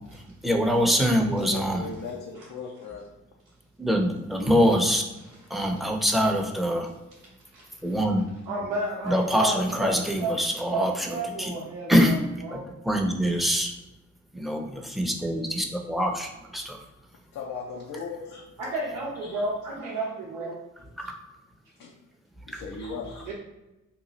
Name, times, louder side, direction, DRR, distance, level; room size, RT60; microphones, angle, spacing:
voice 1, 0.4-1.8 3.8-5.0 5.5-6.9 7.8-8.2 9.0-11.5 11.9-12.2 12.5-13.7 14.3-16.8 21.0-21.2, equal, ahead, 2 dB, 0.6 m, -24 dB
voice 2, 1.4-3.1 17.3-18.7 19.2-19.4 21.8-22.0 22.5-23.3, left 5 dB, 80° left, -2 dB, 0.6 m, -38 dB
voice 3, 8.5-10.4 10.7-12.6 18.6-20.6 23.3-23.4, right 2 dB, 90° right, -6 dB, 0.7 m, -32 dB
3.0 x 2.4 x 3.9 m, 0.99 s
supercardioid pair, 55°, 32 cm